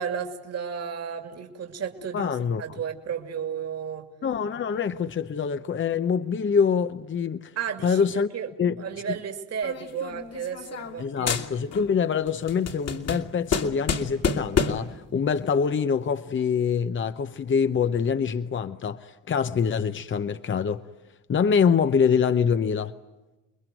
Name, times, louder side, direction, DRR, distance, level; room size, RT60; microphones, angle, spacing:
voice 1, 0.0-2.3 2.6-4.1 7.6-8.5 8.8-11.4, right 7 dB, 55° right, 2.7 m, -33 dB
voice 2, 2.1-2.8 4.2-7.5 7.8-8.3 8.6-8.8 11.0-20.8 21.3-22.9, left 6 dB, 40° left, 0.9 m, -25 dB
sound 1, 9.6-11.0 11.3-11.9 12.3-15.0, left 5 dB, 55° left, 2.5 m, -28 dB
29.0 x 21.5 x 9.2 m
cardioid pair, 90°, 30 cm